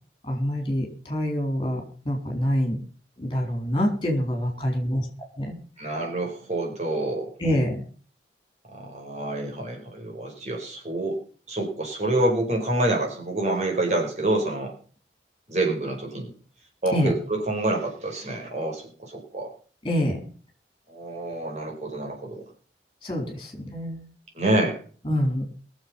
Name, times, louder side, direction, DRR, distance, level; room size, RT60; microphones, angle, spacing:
voice 1, 0.2-2.8 3.2-5.1 5.4-5.6 7.4-7.8 16.9-17.1 19.8-20.3 23.0-24.0 25.0-25.5, equal, 25° left, 2 dB, 4.6 m, -26 dB
voice 2, 5.8-7.3 8.7-11.2 11.5-14.7 15.5-16.3 16.8-19.5 20.9-22.4 24.3-24.8, right 1 dB, 40° right, 0 dB, 5.0 m, -27 dB
22.5 x 7.5 x 5.7 m, 0.42 s
head